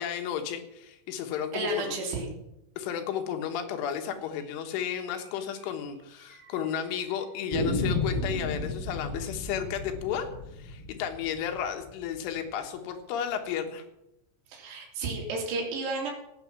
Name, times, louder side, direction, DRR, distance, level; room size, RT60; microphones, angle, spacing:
voice 1, 0.0-2.0 2.8-13.9, left 8 dB, 80° left, 6 dB, 3.9 m, -33 dB
voice 2, 1.5-2.3 14.5-16.1, right 2 dB, 60° right, -1 dB, 5.1 m, -32 dB
sound 1, 4.7-4.8 5.2-5.3 5.5-5.6 6.3-6.8 7.5-12.3, left 2 dB, 5° right, 6.6 m, -33 dB
17.0 x 9.0 x 6.0 m, 0.87 s
omnidirectional pair, 5.5 m